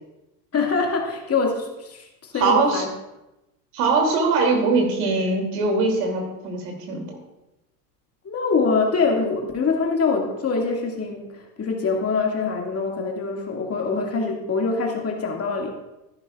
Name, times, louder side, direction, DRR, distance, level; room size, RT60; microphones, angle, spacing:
voice 1, 0.5-2.9 8.2-15.7, left 4 dB, 30° left, 0 dB, 2.2 m, -24 dB
voice 2, 2.3-2.8 3.7-7.1, right 3 dB, 65° right, 2 dB, 3.0 m, -21 dB
14.0 x 11.0 x 2.5 m, 0.95 s
hypercardioid pair, 80°, 48 cm